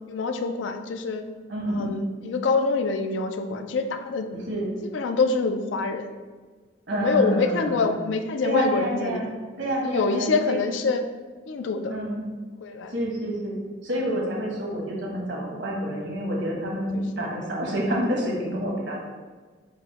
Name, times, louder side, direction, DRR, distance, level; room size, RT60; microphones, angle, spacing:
voice 1, 0.1-1.2 1.7-4.3 4.9-6.1 6.9-9.2 9.8-11.0 11.5-11.9 12.6-12.9 14.1-14.3 16.9-17.3, left 4 dB, 80° left, 7 dB, 0.4 m, -26 dB
voice 2, 1.5-2.0 4.3-4.7 6.9-7.9 8.4-9.3 9.6-10.6 11.9-12.2 12.9-13.5 13.8-19.0, equal, 70° right, -3 dB, 1.2 m, -28 dB
4.8 x 2.1 x 4.6 m, 1.4 s
head